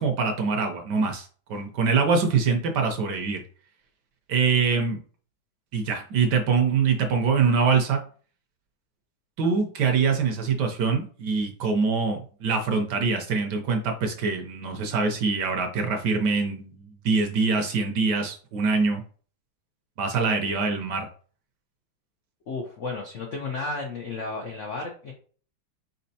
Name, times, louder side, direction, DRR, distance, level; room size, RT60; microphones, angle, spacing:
voice 1, 0.0-3.4 4.3-5.0 5.7-8.0 9.4-19.0 20.0-21.1, right 5 dB, 70° right, 4 dB, 1.1 m, -24 dB
voice 2, 22.5-25.1, left 3 dB, 90° left, 1 dB, 0.6 m, -33 dB
4.5 x 4.1 x 2.7 m, 0.42 s
omnidirectional pair, 2.3 m